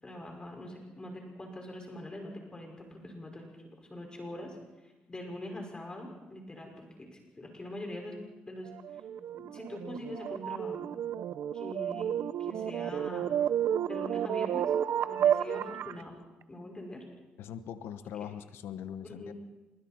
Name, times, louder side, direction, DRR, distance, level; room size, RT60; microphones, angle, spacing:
voice 1, 0.0-3.4 3.9-4.6 5.1-7.1 7.3-8.1 8.5-8.7 9.3-10.9 11.5-12.1 12.4-13.4 13.8-14.7 15.0-16.1 16.5-17.0 19.1-19.3, left 1 dB, 20° left, 2 dB, 5.6 m, -43 dB
sound 1, 8.7-16.0, right 10 dB, 70° right, 0.7 m, -31 dB
voice 2, 17.4-19.3, left 9 dB, 85° left, 11 dB, 1.1 m, -41 dB
26.5 x 23.0 x 4.5 m, 1.1 s
cardioid pair, 85°, 4 cm